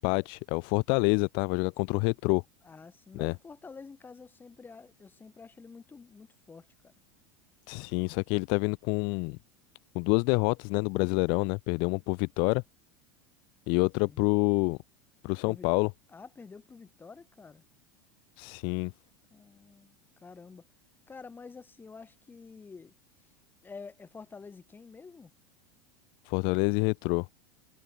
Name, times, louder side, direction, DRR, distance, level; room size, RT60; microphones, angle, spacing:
voice 1, 0.0-2.4 3.1-3.3 7.7-9.4 9.9-12.6 13.7-14.8 15.2-15.9 18.4-18.9 26.3-27.3, left 34 dB, 55° left, 0.4 m, -27 dB
voice 2, 2.6-6.9 14.1-14.3 15.4-15.7 16.1-17.6 19.3-20.7 21.1-22.9 23.6-25.3, left 4 dB, 20° left, 5.3 m, -49 dB
hypercardioid pair, 85°, 10 cm